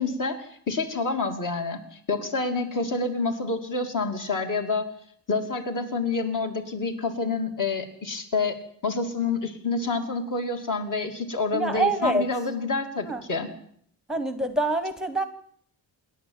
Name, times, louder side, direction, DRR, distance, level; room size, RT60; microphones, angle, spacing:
voice 1, 0.0-4.9 5.3-13.5, left 3 dB, 45° left, 4 dB, 2.8 m, -28 dB
voice 2, 11.5-12.3 13.0-13.2 14.1-15.2, right 2 dB, ahead, 9 dB, 1.1 m, -25 dB
27.5 x 11.0 x 9.0 m, 0.65 s
wide cardioid pair, 175°, 45 cm